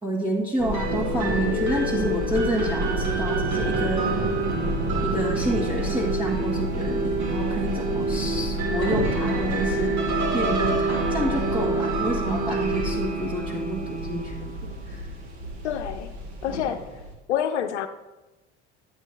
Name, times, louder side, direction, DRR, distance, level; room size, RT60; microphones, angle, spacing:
voice 1, 0.0-4.0 5.0-14.5 14.9-15.0, equal, 15° right, -4 dB, 1.6 m, -29 dB
sound 1, 0.6-17.1, right 2 dB, 50° right, 2.2 m, -26 dB
voice 2, 15.6-16.1 16.4-16.9 17.3-17.9, left 9 dB, 70° left, 9 dB, 0.7 m, -27 dB
11.0 x 8.5 x 3.4 m, 1.0 s
figure-of-eight pair, 65°, 35 cm